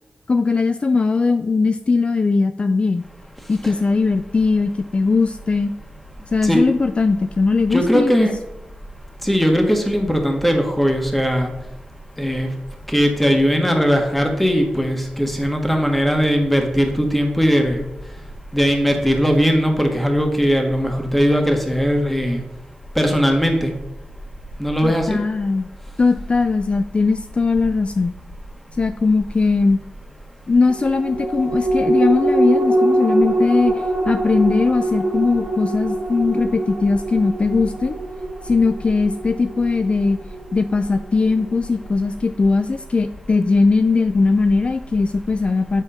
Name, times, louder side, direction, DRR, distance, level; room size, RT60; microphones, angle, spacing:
voice 1, 0.3-3.1 3.5-5.7 6.3-8.3 24.8-25.7 26.0-28.1 28.8-29.8 30.5-37.9 38.4-40.2 40.5-45.8, left 4 dB, 40° left, 10 dB, 0.3 m, -19 dB
voice 2, 7.7-8.3 9.2-11.5 12.2-12.5 12.9-17.8 18.5-22.4 22.9-23.7 24.6-25.2, equal, 5° left, 3 dB, 1.5 m, -19 dB
sound 1, 30.7-41.5 41.9-42.0, right 1 dB, 75° right, 2.1 m, -23 dB
8.1 x 3.6 x 5.5 m, 0.89 s
cardioid pair, 60°, 3 cm